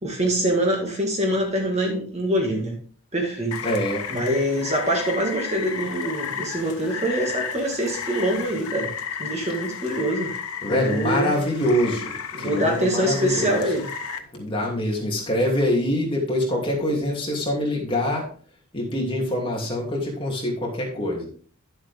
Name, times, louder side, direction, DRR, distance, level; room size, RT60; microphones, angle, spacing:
voice 1, 0.0-2.8 3.1-3.6 4.1-8.9 9.2-10.3 10.7-11.4 12.3-13.9, right 1 dB, 30° right, 1 dB, 1.9 m, -24 dB
Rain, 3.5-14.2, left 7 dB, 75° left, 1.0 m, -33 dB
voice 2, 3.6-4.0 10.6-12.1 12.4-13.6 14.3-18.3 18.7-21.3, left 1 dB, 25° left, -2 dB, 2.7 m, -24 dB
11.5 x 7.4 x 3.5 m, 0.43 s
head